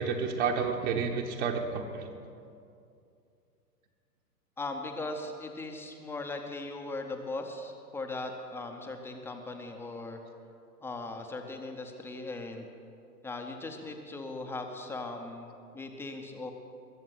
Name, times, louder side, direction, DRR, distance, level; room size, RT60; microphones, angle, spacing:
voice 1, 0.0-2.1, right 5 dB, 45° right, 1 dB, 1.2 m, -30 dB
voice 2, 4.6-10.2 10.8-12.7 13.2-16.5, left 2 dB, 5° left, 3 dB, 0.6 m, -39 dB
22.0 x 7.3 x 7.7 m, 2.5 s
figure-of-eight pair, 115°, 47 cm